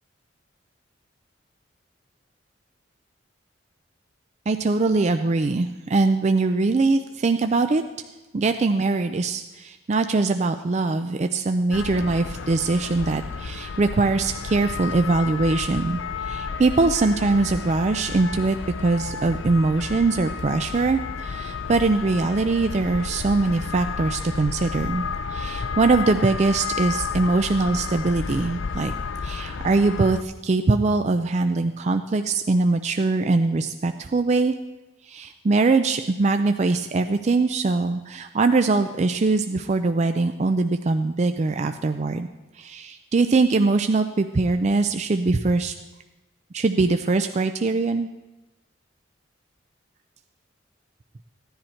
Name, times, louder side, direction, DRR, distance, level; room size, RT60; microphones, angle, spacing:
voice 1, 4.5-7.8 8.3-25.0 25.3-28.9 29.2-34.5 35.0-42.3 42.5-45.7 46.5-48.1, right 3 dB, 35° right, 7 dB, 0.4 m, -22 dB
sound 1, 11.7-30.2, left 5 dB, 85° left, 0.5 m, -32 dB
16.0 x 10.5 x 4.4 m, 1.1 s
head